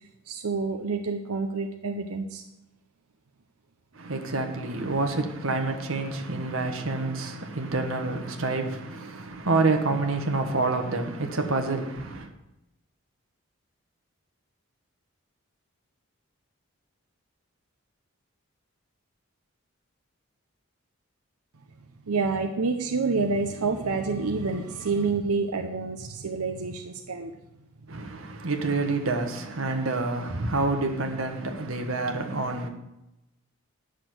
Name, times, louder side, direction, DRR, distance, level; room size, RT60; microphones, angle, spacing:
voice 1, 0.3-2.4 22.1-27.3, right 4 dB, 90° right, 0.7 m, -28 dB
voice 2, 3.9-12.3 27.9-32.7, right 3 dB, 65° right, 1.4 m, -28 dB
9.9 x 6.6 x 7.8 m
head